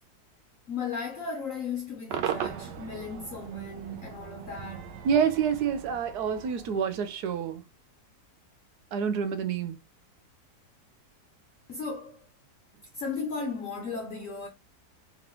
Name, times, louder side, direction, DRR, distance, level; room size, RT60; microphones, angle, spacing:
voice 1, 0.7-4.9 11.7-12.2 12.9-14.5, left 4 dB, 60° left, 1.1 m, -35 dB
Cheering / Crowd / Fireworks, 2.1-7.4, right 9 dB, 90° right, 1.3 m, -38 dB
voice 2, 5.0-7.6 8.9-9.8, right 7 dB, 75° right, 1.3 m, -27 dB
3.8 x 3.4 x 3.0 m
omnidirectional pair, 1.8 m